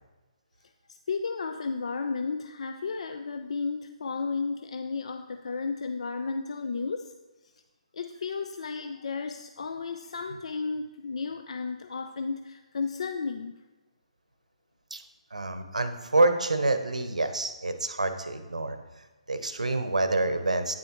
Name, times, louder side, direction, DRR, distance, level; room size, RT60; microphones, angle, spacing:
voice 1, 0.9-7.1 7.4-7.5 7.9-13.5, left 4 dB, 60° left, 8 dB, 0.4 m, -33 dB
voice 2, 15.3-18.8 19.3-20.8, right 2 dB, 80° right, 9 dB, 0.8 m, -27 dB
9.2 x 7.4 x 3.0 m, 1.1 s
figure-of-eight pair, 135°, 4 cm